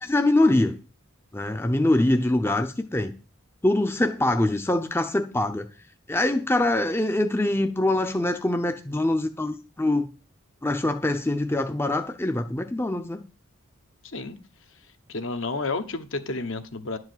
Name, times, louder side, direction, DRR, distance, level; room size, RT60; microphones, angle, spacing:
voice 1, 0.0-0.8 1.3-3.1 3.6-5.7 6.1-10.1 10.6-13.2, left 1 dB, 10° left, 7 dB, 0.6 m, -24 dB
voice 2, 14.0-14.4 15.1-17.0, left 3 dB, 65° left, 8 dB, 1.1 m, -31 dB
11.5 x 4.8 x 7.9 m, 0.35 s
head